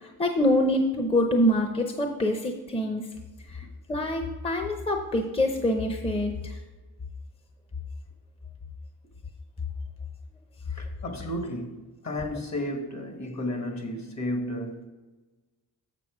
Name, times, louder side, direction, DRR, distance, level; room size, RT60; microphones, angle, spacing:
voice 1, 0.0-3.0 3.5-3.6 3.9-6.6, left 1 dB, 15° left, 0.7 m, -25 dB
voice 2, 10.7-14.9, left 1 dB, 45° left, 1.5 m, -33 dB
6.9 x 6.8 x 4.8 m
cardioid pair, 100°, 37 cm